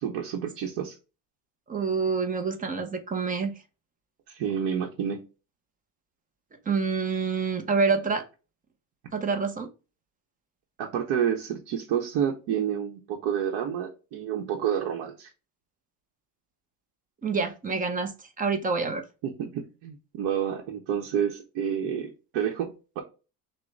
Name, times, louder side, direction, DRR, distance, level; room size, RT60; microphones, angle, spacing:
voice 1, 0.0-1.0 4.3-5.3 10.8-15.3 19.2-23.0, right 8 dB, 75° right, 0.9 m, -29 dB
voice 2, 1.7-3.5 6.7-8.2 9.1-9.7 17.2-19.0, right 4 dB, 20° right, 0.5 m, -27 dB
6.2 x 2.1 x 3.3 m
cardioid pair, 155°, 41 cm